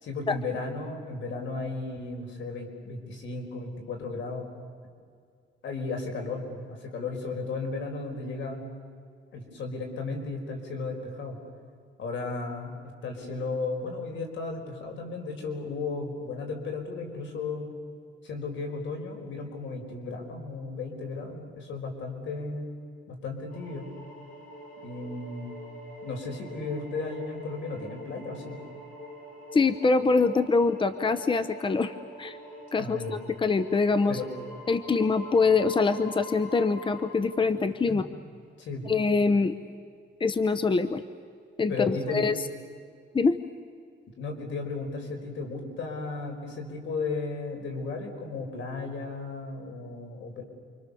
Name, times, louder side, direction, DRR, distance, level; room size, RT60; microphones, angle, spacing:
voice 1, 0.0-4.5 5.6-8.6 9.3-11.4 12.0-12.7 13.0-17.7 18.2-22.7 23.1-23.9 24.8-25.6 26.0-28.6 32.8-33.2 34.1-34.2 37.9-38.0 38.6-38.9 41.7-42.3 44.2-50.4, left 3 dB, 80° left, 3 dB, 4.9 m, -35 dB
sound 1, 23.5-37.1, equal, 45° left, 6.2 m, -45 dB
voice 2, 29.5-32.4 32.7-34.2 34.7-38.1 38.9-39.5 40.2-41.0 41.6-42.4 43.1-43.4, left 4 dB, 25° left, 11 dB, 0.9 m, -24 dB
29.0 x 25.0 x 7.0 m, 2.2 s
cardioid pair, 110°, 19 cm